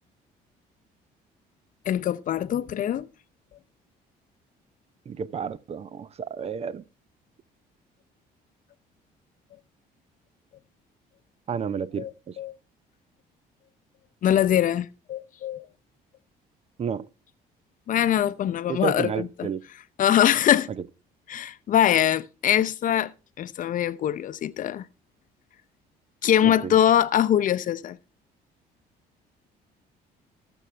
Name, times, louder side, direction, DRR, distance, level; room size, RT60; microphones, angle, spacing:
voice 1, 1.9-3.1 12.0-12.1 12.4-12.5 14.2-15.7 17.9-19.5 20.0-20.7 21.3-23.1 23.4-24.8 26.2-28.0, left 10 dB, 50° left, 0.7 m, -23 dB
voice 2, 5.1-6.8 11.5-12.3 16.8-17.0 18.7-19.6 26.4-26.7, right 6 dB, 35° right, 0.6 m, -31 dB
19.5 x 7.0 x 3.3 m
cardioid pair, 110°, 17 cm